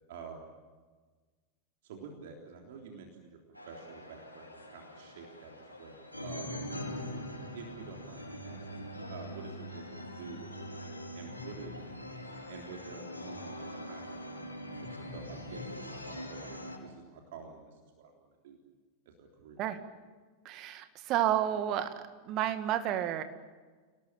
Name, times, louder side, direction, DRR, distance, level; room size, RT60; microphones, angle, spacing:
voice 1, 0.1-0.4 1.8-3.4 3.7-6.7 7.5-10.9 11.1-11.7 12.5-14.3 14.9-18.6 19.2-19.6, right 5 dB, 55° right, 2 dB, 3.6 m, -49 dB
sound 1, 3.5-16.8, equal, 85° left, 5.6 m, -43 dB
voice 2, 20.4-21.9 22.2-23.2, right 11 dB, 35° right, 9 dB, 2.1 m, -31 dB
29.5 x 18.5 x 9.0 m, 1.4 s
figure-of-eight pair, 90°, 0 cm